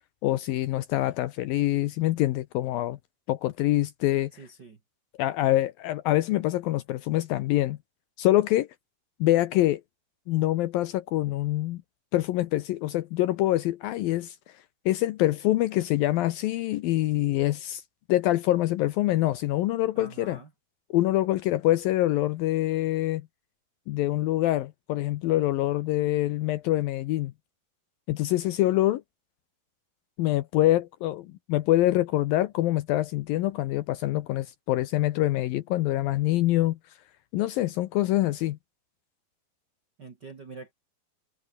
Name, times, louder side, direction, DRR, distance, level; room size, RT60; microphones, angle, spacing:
voice 1, 0.2-3.0 3.3-4.3 5.2-7.8 8.2-8.7 9.2-9.8 10.3-11.8 12.1-14.4 14.9-17.8 18.1-20.4 20.9-23.2 23.9-27.3 28.1-29.0 30.2-36.8 37.3-38.6, left 15 dB, 75° left, 2.3 m, -25 dB
voice 2, 4.3-4.8 19.9-20.5 40.0-40.7, right 4 dB, 45° right, 1.5 m, -45 dB
omnidirectional pair, 4.8 m